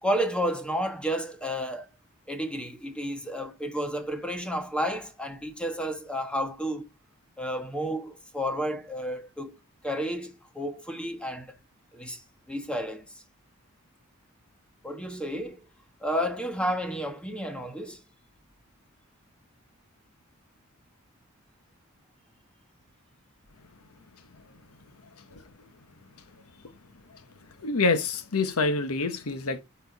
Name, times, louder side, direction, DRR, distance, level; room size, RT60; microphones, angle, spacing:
voice 1, 0.0-1.9 2.3-6.9 7.4-9.6 9.8-11.6 11.9-12.2 12.5-13.0 14.8-15.6 16.0-18.0, equal, 5° left, 1.3 m, -31 dB
voice 2, 27.6-29.6, left 3 dB, 85° left, 1.0 m, -26 dB
9.6 x 4.4 x 4.0 m
head